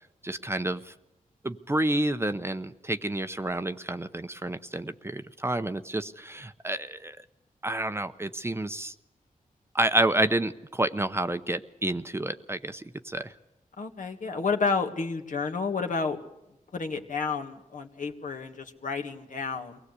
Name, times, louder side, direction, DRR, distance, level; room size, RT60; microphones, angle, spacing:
voice 1, 0.2-0.9 1.4-7.2 7.6-8.9 9.7-13.3, right 1 dB, 15° right, 11 dB, 0.7 m, -29 dB
voice 2, 13.8-16.2 16.7-19.8, left 4 dB, 65° left, 3 dB, 1.8 m, -30 dB
23.5 x 17.5 x 8.2 m, 0.92 s
wide cardioid pair, 80°, 15 cm